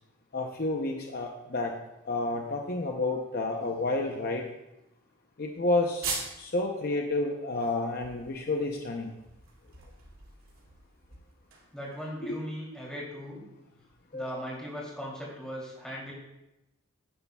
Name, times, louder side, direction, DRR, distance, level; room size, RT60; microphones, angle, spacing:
voice 1, 0.3-1.7 2.0-4.5 5.4-9.1 12.2-12.4 14.1-14.5, left 2 dB, 45° left, 2 dB, 0.7 m, -30 dB
sound 1, 6.0-6.5 6.9-7.0 7.4-12.0, right 4 dB, 80° right, 2.5 m, -41 dB
voice 2, 11.7-13.4 14.1-16.1, equal, 5° left, -4 dB, 2.8 m, -38 dB
11.0 x 10.0 x 2.3 m, 0.93 s
head